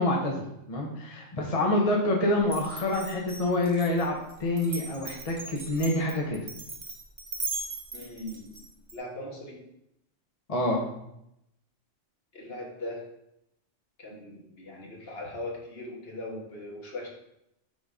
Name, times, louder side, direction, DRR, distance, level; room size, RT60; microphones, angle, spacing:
voice 1, 0.0-4.1 4.4-6.4 10.5-10.8, left 1 dB, 35° left, -1 dB, 0.8 m, -27 dB
Glass, 2.5-8.9, right 3 dB, 25° right, 0.9 m, -38 dB
voice 2, 7.9-8.5 8.9-9.6 12.3-13.0 14.0-17.1, left 1 dB, 55° left, -2 dB, 1.5 m, -39 dB
5.3 x 3.9 x 4.8 m, 0.81 s
omnidirectional pair, 1.3 m